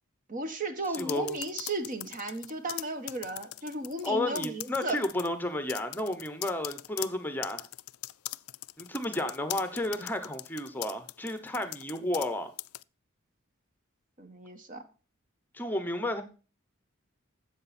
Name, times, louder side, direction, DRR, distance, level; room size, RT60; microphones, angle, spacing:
voice 1, 0.3-5.0 14.2-14.8, right 2 dB, 40° right, 9 dB, 1.3 m, -35 dB
sound 1, 0.8-4.1 4.3-5.3 5.7-12.3 12.6-12.8, left 17 dB, 85° left, 0.4 m, -40 dB
voice 2, 0.8-1.4 4.0-7.7 8.8-12.5 15.5-16.2, left 1 dB, 10° left, 9 dB, 0.9 m, -32 dB
13.0 x 7.9 x 4.3 m, 0.35 s
head